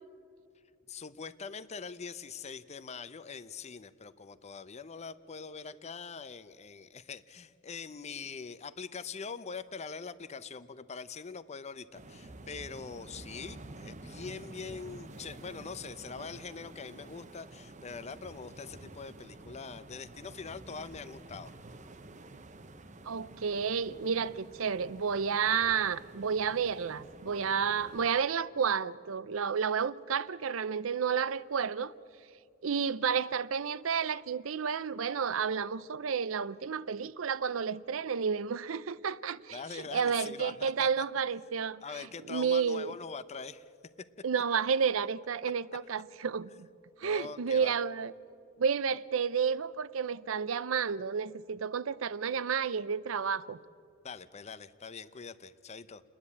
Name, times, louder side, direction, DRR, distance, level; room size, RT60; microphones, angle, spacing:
voice 1, 0.9-21.5 39.5-41.0 41.8-43.7 47.0-47.8 54.0-56.0, left 5 dB, 35° left, 0.6 m, -43 dB
sound 1, 11.9-28.1, right 2 dB, 40° right, 0.8 m, -50 dB
voice 2, 23.1-31.9 32.6-42.9 44.2-46.7 47.0-48.1 48.6-53.6, right 6 dB, 90° right, 0.6 m, -31 dB
29.5 x 10.5 x 8.5 m
head